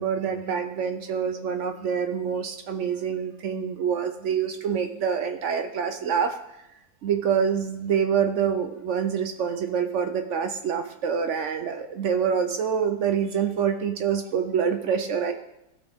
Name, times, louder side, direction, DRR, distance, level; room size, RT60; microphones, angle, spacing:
voice 1, 0.0-6.4 7.0-15.3, right 7 dB, 70° right, 7 dB, 0.7 m, -26 dB
15.0 x 6.0 x 3.5 m, 0.87 s
omnidirectional pair, 1.9 m